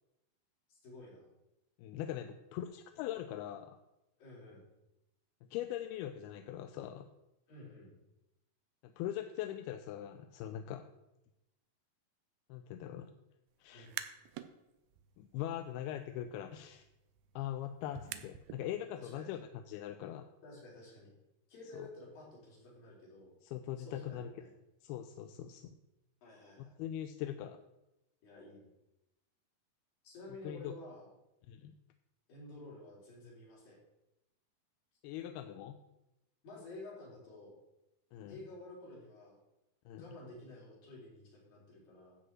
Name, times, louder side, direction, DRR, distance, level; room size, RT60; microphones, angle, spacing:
voice 1, 0.7-1.3 4.2-4.7 7.5-8.0 13.7-14.0 19.0-19.4 20.4-21.1 21.5-23.3 23.9-24.5 26.2-26.7 28.2-28.7 30.0-31.1 32.3-33.8 36.4-37.6 38.3-39.4 39.9-42.2, left 2 dB, 65° left, -5 dB, 5.5 m, -51 dB
voice 2, 1.8-3.8 5.5-7.1 8.8-10.9 12.5-13.1 13.6-13.9 15.2-16.8 17.4-20.3 21.7-21.9 23.4-24.3 24.8-25.7 26.6-27.6 30.4-30.7 31.5-31.7 35.0-35.8 38.1-38.4 39.9-40.0, left 11 dB, 85° left, 7 dB, 2.5 m, -41 dB
sound 1, 13.7-14.5 14.9-18.7, right 11 dB, 85° right, 2.5 m, -48 dB
12.5 x 5.2 x 7.5 m, 0.93 s
omnidirectional pair, 4.4 m